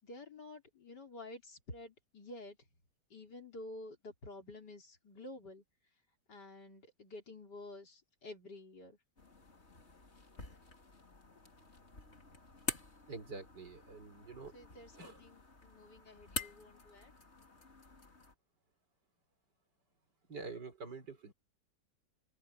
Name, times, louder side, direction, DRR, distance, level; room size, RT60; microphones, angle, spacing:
voice 1, 0.0-2.6 3.1-5.6 6.3-9.0 14.5-17.1, left 2 dB, 65° left, 4.4 m, -50 dB
sound 1, 9.2-18.3, left 3 dB, 35° left, 3.2 m, -47 dB
voice 2, 13.1-14.5 15.0-15.2 20.3-21.3, right 4 dB, 70° right, 5.0 m, -46 dB
open air
omnidirectional pair, 1.9 m